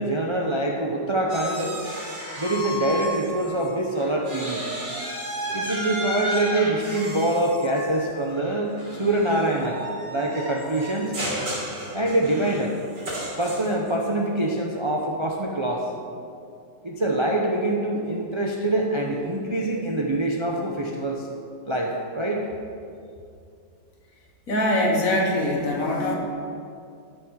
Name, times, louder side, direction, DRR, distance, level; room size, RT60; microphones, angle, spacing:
voice 1, 0.0-1.7 2.4-4.6 5.5-9.8 10.1-11.1 11.9-12.8 13.4-15.9 16.8-21.3 21.6-22.4, right 1 dB, 30° right, 0 dB, 0.5 m, -25 dB
sound 1, 1.3-3.7 4.0-13.9, equal, 80° right, 4.3 m, -33 dB
voice 2, 24.5-26.2, left 1 dB, 50° left, -1 dB, 1.9 m, -23 dB
13.0 x 6.4 x 6.4 m, 2.4 s
omnidirectional pair, 1.9 m